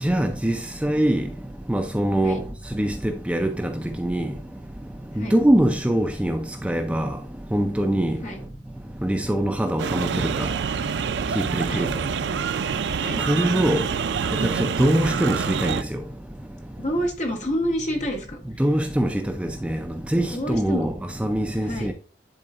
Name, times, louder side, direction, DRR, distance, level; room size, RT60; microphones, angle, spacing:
voice 1, 0.0-1.3 1.7-2.4 2.7-4.3 5.2-7.2 7.5-8.2 9.0-10.5 11.3-11.9 13.3-13.8 14.4-16.0 18.6-19.8 20.1-20.9 21.2-21.9, right 1 dB, 5° right, 0.4 m, -23 dB
sound 1, 9.8-15.8, right 6 dB, 70° right, 0.4 m, -26 dB
voice 2, 16.8-18.6 20.3-20.9 21.6-21.9, equal, 40° left, 1.6 m, -28 dB
11.0 x 3.8 x 2.4 m
head